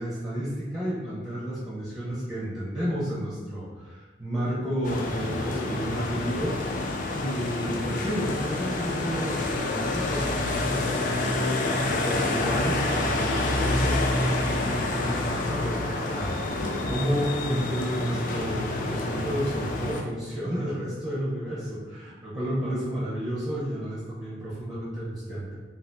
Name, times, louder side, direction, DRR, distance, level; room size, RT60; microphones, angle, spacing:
voice 1, 0.0-6.6 7.1-16.3 16.6-25.6, equal, 20° right, -9 dB, 0.6 m, -31 dB
sound 1, 4.8-20.0, left 2 dB, 45° left, 0.3 m, -28 dB
2.7 x 2.3 x 3.3 m, 1.3 s
head